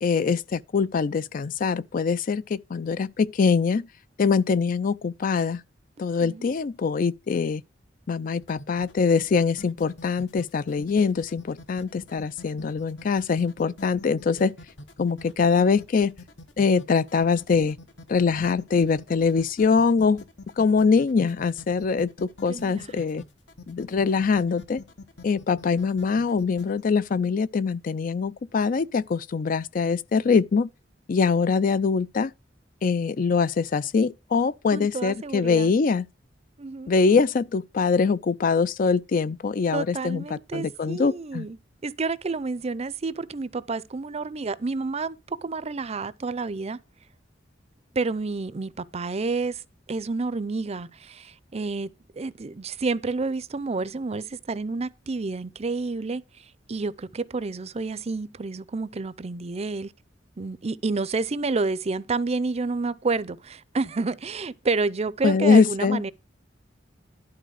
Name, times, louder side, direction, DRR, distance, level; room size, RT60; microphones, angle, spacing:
voice 1, 0.0-3.9 4.2-5.6 6.0-7.6 8.1-14.5 15.0-16.1 16.6-17.8 18.1-20.2 20.6-23.2 23.7-24.8 25.2-30.7 31.1-32.3 32.8-36.1 36.9-41.5 65.2-66.0, left 5 dB, 50° left, 0.4 m, -23 dB
sound 1, 8.4-26.8, left 2 dB, 70° left, 1.3 m, -45 dB
voice 2, 22.5-23.0 34.7-35.7 36.6-37.0 39.7-41.6 41.8-46.8 47.9-49.6 49.9-51.9 52.1-59.9 60.4-66.1, right 3 dB, 35° right, 0.5 m, -29 dB
11.5 x 4.0 x 6.3 m
head